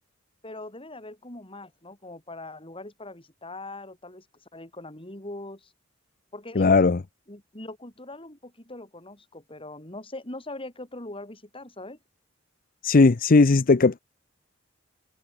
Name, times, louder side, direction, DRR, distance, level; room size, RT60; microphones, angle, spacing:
voice 1, 0.4-4.3 4.5-5.7 6.3-6.8 7.3-12.0, left 2 dB, 30° left, 6.3 m, -41 dB
voice 2, 6.6-7.0 12.8-14.0, left 3 dB, 45° left, 0.6 m, -17 dB
head